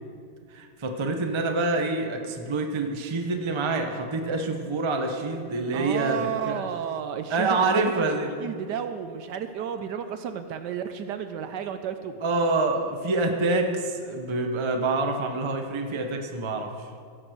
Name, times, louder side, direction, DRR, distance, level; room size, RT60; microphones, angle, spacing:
voice 1, 0.5-6.6 7.3-8.6 12.2-16.9, right 3 dB, 30° right, 4 dB, 0.5 m, -27 dB
voice 2, 5.7-8.1 8.4-12.2, right 8 dB, 75° right, 9 dB, 1.1 m, -32 dB
16.0 x 6.2 x 6.5 m, 2.3 s
omnidirectional pair, 2.1 m